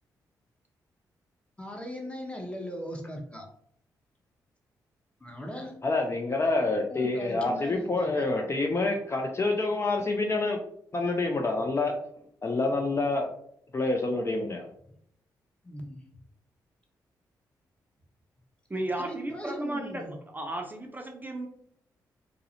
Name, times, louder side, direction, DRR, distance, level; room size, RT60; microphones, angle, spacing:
voice 1, 1.6-3.5 5.2-5.8 6.9-8.2 15.6-16.0 19.0-20.2, equal, 15° left, 1 dB, 0.8 m, -38 dB
voice 2, 5.8-10.6 10.9-11.9 12.4-13.3 13.7-14.6, left 3 dB, 30° left, 2 dB, 0.4 m, -27 dB
voice 3, 18.7-21.5, right 1 dB, 20° right, 3 dB, 0.5 m, -34 dB
2.3 x 2.0 x 2.8 m, 0.69 s
hypercardioid pair, 40°, 9 cm